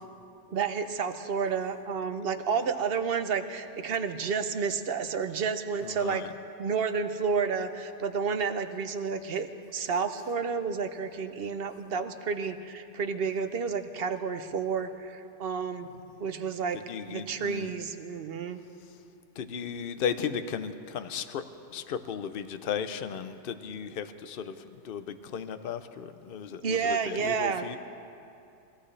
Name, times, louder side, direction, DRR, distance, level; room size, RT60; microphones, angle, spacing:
voice 1, 0.5-6.2 6.6-15.9 16.2-16.8 17.1-18.6 26.6-27.8, right 5 dB, 60° right, 8 dB, 0.9 m, -30 dB
voice 2, 5.8-6.3 16.7-17.7 19.4-21.4 21.7-24.6 24.8-27.8, left 7 dB, 55° left, 10 dB, 0.8 m, -35 dB
24.0 x 16.0 x 3.3 m, 2.6 s
omnidirectional pair, 1.2 m